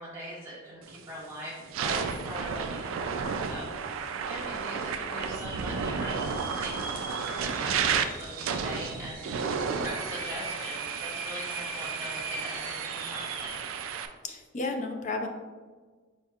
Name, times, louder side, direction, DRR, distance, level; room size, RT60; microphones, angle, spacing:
voice 1, 0.0-13.6, right 1 dB, 15° right, -8 dB, 1.3 m, -42 dB
sound 1, 0.9-1.1 1.6-14.1, right 6 dB, 75° right, 0.3 m, -32 dB
sound 2, 2.8-2.9 3.1-3.7 4.2-4.3 5.0-13.7, right 2 dB, 40° right, 0.7 m, -41 dB
voice 2, 14.2-15.3, left 3 dB, 35° left, 4 dB, 0.4 m, -32 dB
4.4 x 4.4 x 2.4 m, 1.4 s
head